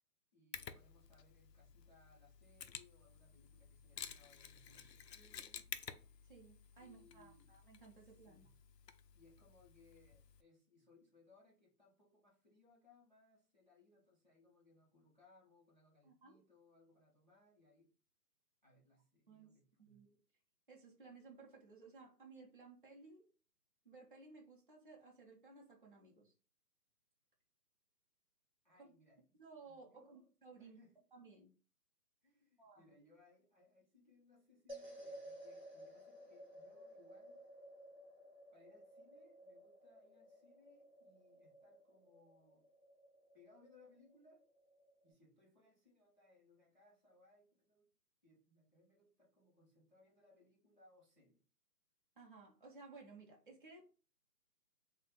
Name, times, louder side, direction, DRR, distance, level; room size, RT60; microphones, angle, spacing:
voice 1, 0.3-6.0 6.8-7.6 8.0-8.6 9.1-17.9 18.6-20.1 28.6-29.4 29.7-30.3 30.6-30.9 32.2-37.4 38.5-42.7 43.3-44.5 45.0-47.9 48.2-51.4, left 3 dB, 30° left, 0.5 m, -69 dB
Mechanisms, 0.5-10.4, left 8 dB, 75° left, 0.6 m, -53 dB
voice 2, 6.2-8.5 16.0-16.4 19.3-20.1 20.7-23.3 23.8-26.3 28.8-28.9 29.4-30.8 31.1-31.5 32.6-32.9 52.2-53.8, right 4 dB, 35° right, 0.4 m, -58 dB
sound 1, 34.7-45.1, right 1 dB, 15° right, 1.2 m, -56 dB
3.0 x 2.1 x 3.9 m
hypercardioid pair, 160°, 50 cm